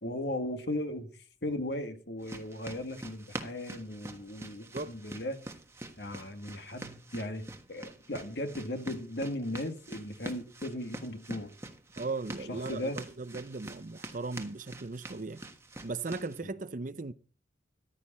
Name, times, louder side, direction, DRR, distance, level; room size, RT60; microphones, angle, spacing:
voice 1, 0.0-1.1 1.4-5.4 6.0-11.5 12.5-13.0, left 1 dB, 60° left, 2.0 m, -37 dB
sound 1, 2.2-16.4, right 2 dB, 15° right, 1.3 m, -46 dB
voice 2, 12.0-15.4 15.8-17.1, right 3 dB, 45° right, 0.6 m, -37 dB
14.5 x 11.5 x 4.3 m
head